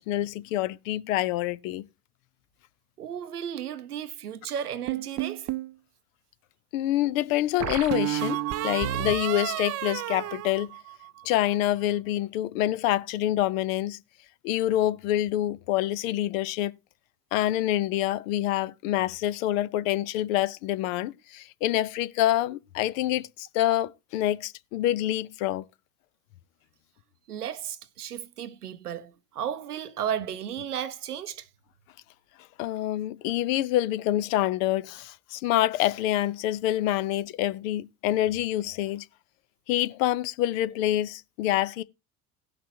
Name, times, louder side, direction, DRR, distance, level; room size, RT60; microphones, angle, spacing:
voice 1, 0.0-1.8 6.7-10.7 11.2-14.0 14.4-16.7 17.3-25.6 32.6-39.1 39.7-41.8, left 13 dB, 60° left, 0.7 m, -26 dB
voice 2, 3.0-5.5 27.3-31.5, right 9 dB, 85° right, 0.7 m, -34 dB
sound 1, 4.9-5.7 7.6-11.2, right 14 dB, 35° right, 0.6 m, -31 dB
17.5 x 5.9 x 2.8 m
figure-of-eight pair, 60°, 45 cm